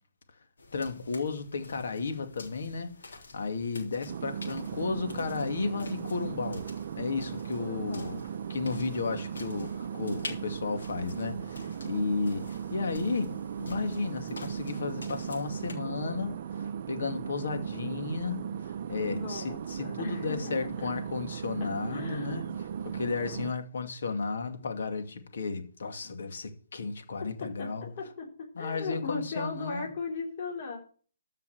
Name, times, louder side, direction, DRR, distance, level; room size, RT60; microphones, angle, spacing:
sound 1, 0.6-15.7, left 3 dB, 80° left, 3.7 m, -49 dB
voice 1, 0.7-6.6 7.0-8.2 8.5-22.5 22.8-27.9 28.6-29.9, left 4 dB, 65° left, 2.4 m, -34 dB
sound 2, 4.1-23.5, right 8 dB, 45° right, 0.6 m, -37 dB
voice 2, 7.6-8.3 18.9-20.9 21.6-22.5 27.2-27.7 28.0-28.3 28.6-30.8, left 3 dB, 35° left, 4.1 m, -37 dB
13.5 x 5.8 x 6.5 m
hypercardioid pair, 160°, 0 cm